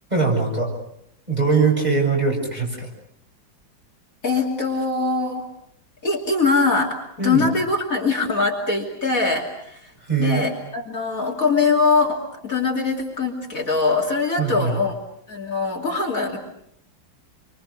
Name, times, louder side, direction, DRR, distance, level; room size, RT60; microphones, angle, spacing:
voice 1, 0.1-0.7 1.3-2.9 7.2-7.5 10.1-10.4 14.4-14.8, right 4 dB, 20° right, -1 dB, 7.7 m, -21 dB
voice 2, 4.2-5.5 6.0-9.9 10.2-14.9 15.3-16.4, left 4 dB, 45° left, 0 dB, 3.2 m, -22 dB
28.5 x 24.5 x 6.5 m, 0.72 s
omnidirectional pair, 2.1 m